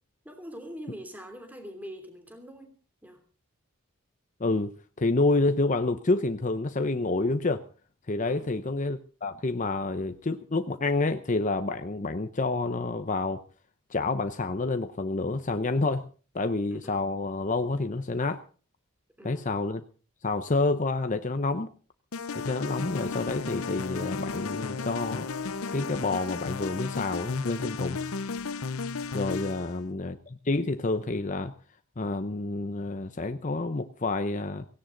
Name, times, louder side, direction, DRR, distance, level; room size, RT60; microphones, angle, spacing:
voice 1, 0.2-2.7 3.0-3.2 8.2-8.5 16.7-17.0 19.2-19.5 29.4-29.7, equal, 10° right, 5 dB, 3.1 m, -44 dB
voice 2, 4.4-7.7 8.1-13.4 13.9-16.1 16.3-18.4 19.2-19.8 20.2-21.7 22.3-25.3 25.7-28.0 29.1-31.5 32.0-34.7, left 3 dB, 35° left, 8 dB, 0.7 m, -28 dB
sound 1, 22.1-29.8, left 5 dB, 75° left, 0.7 m, -34 dB
17.0 x 17.0 x 3.9 m, 0.39 s
head